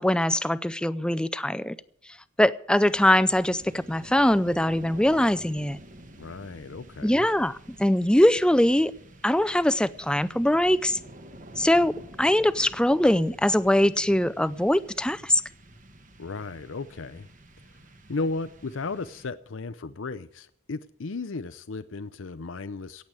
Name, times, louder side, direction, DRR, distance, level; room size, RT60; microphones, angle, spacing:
voice 1, 0.0-1.8 2.4-5.8 7.0-8.9 9.2-11.0 11.6-15.4, left 1 dB, 5° left, 0.5 m, -22 dB
sound 1, 2.7-19.7, right 1 dB, 40° right, 1.6 m, -49 dB
voice 2, 6.2-7.3 16.2-17.3 18.1-23.1, left 3 dB, 75° left, 0.7 m, -35 dB
18.0 x 7.9 x 8.2 m
head